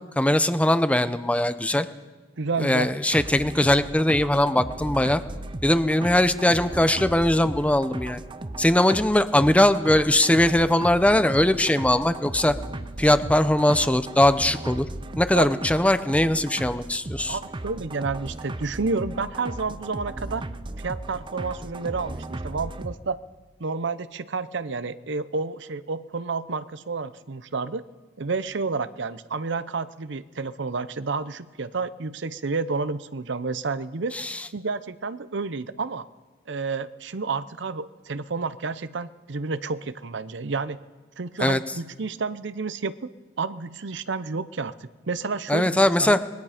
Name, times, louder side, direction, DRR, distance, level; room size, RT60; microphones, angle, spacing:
voice 1, 0.0-1.9 2.6-5.2 5.6-8.2 8.6-12.5 13.0-14.9 15.2-17.4 34.1-34.4 41.4-41.6 45.5-46.2, left 1 dB, 5° left, 11 dB, 0.7 m, -20 dB
voice 2, 2.4-2.9 15.3-15.5 17.3-20.4 20.8-23.2 23.6-27.8 28.2-34.1 34.5-36.1 36.5-40.8 41.2-43.0 43.4-44.7 45.1-46.2, right 4 dB, 70° right, 14 dB, 0.7 m, -30 dB
sound 1, 3.1-23.0, right 2 dB, 25° right, 0.6 m, -36 dB
25.0 x 20.5 x 5.0 m, 1.3 s
head